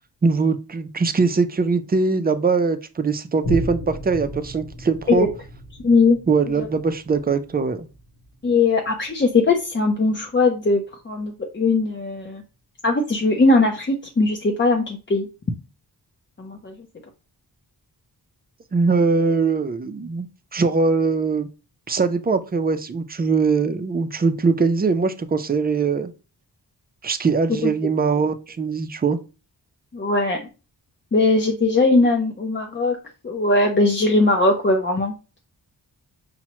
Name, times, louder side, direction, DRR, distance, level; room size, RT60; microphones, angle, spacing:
voice 1, 0.2-5.3 6.3-7.9 18.7-20.3 20.5-21.5 21.9-26.1 27.0-29.2, right 4 dB, 25° right, 9 dB, 0.3 m, -21 dB
Boom, 3.4-10.4 10.9-11.0, equal, 50° left, 0.9 m, -35 dB
voice 2, 5.8-6.2 6.6-6.7 8.4-12.4 12.8-15.3 16.4-16.7 27.6-27.7 29.9-30.4 31.1-33.0 33.2-35.1, left 3 dB, 30° left, 1 dB, 0.5 m, -19 dB
5.7 x 2.0 x 2.9 m, 0.32 s
wide cardioid pair, 130°, 40 cm